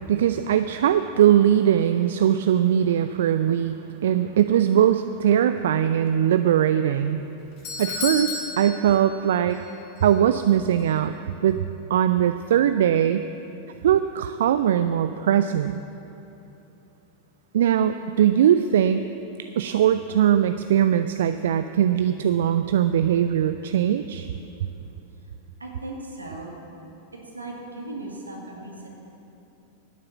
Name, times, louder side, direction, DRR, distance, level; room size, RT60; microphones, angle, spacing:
voice 1, 0.1-7.2 7.8-9.6 10.0-11.1 11.4-11.6 11.9-13.2 13.8-15.8 17.5-19.1 19.4-24.3, right 10 dB, 60° right, 11 dB, 0.3 m, -21 dB
Doorbell, 7.2-9.7 10.0-10.1 10.8-10.9, left 4 dB, 45° left, 2.5 m, -33 dB
voice 2, 25.6-26.5 27.3-29.0, right 2 dB, 80° right, 0 dB, 2.1 m, -37 dB
11.0 x 9.6 x 7.2 m, 2.9 s
figure-of-eight pair, 90°, 0 cm